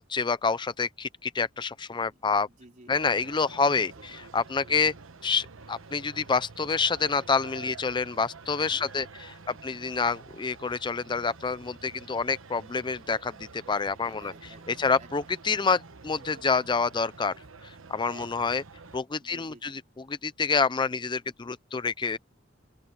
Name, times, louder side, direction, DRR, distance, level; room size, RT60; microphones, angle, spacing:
voice 1, 0.0-2.5 2.9-3.9 4.3-4.9 5.2-9.3 9.6-14.3 14.7-17.3 17.9-18.6 18.9-19.8 20.1-22.2, left 4 dB, 25° left, 0.5 m, -27 dB
voice 2, 2.5-3.0 3.5-4.2 4.7-5.0 8.7-9.8 14.0-15.3 18.0-18.6 19.2-19.8, right 2 dB, 40° right, 3.7 m, -54 dB
sound 1, 2.9-19.0, right 4 dB, 85° right, 1.1 m, -48 dB
open air
head